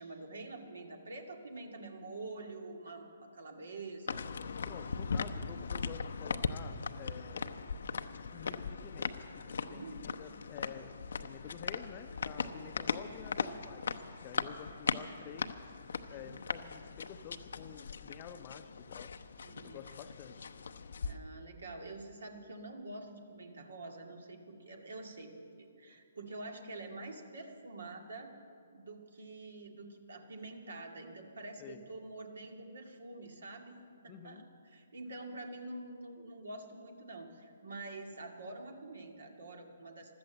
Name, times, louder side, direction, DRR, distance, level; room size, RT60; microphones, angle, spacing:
voice 1, 0.0-4.2 9.6-10.2 12.4-12.7 14.8-15.0 16.1-16.4 19.4-19.8 21.0-28.3 28.7-33.8 34.0-34.5 34.7-40.2, right 2 dB, 70° right, 4 dB, 2.2 m, -47 dB
sound 1, 4.1-21.2, left 5 dB, 65° left, 0.7 m, -39 dB
voice 2, 4.6-7.5 8.3-15.5 16.1-19.1 19.6-20.5 31.6-31.8 34.1-34.4, left 9 dB, 30° left, 10 dB, 0.7 m, -50 dB
14.5 x 12.5 x 7.7 m, 2.4 s
figure-of-eight pair, 135°, 0 cm